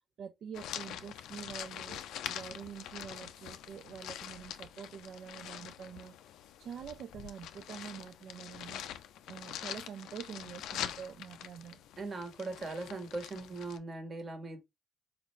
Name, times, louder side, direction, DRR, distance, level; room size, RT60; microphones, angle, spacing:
voice 1, 0.2-2.0 2.3-6.2 6.6-8.8 9.3-11.8, right 7 dB, 65° right, 0.3 m, -46 dB
sound 1, 0.5-13.8, left 10 dB, 85° left, 0.3 m, -44 dB
voice 2, 12.0-14.6, right 3 dB, 40° right, 1.2 m, -40 dB
4.4 x 2.5 x 3.0 m
cardioid pair, 90°, 0 cm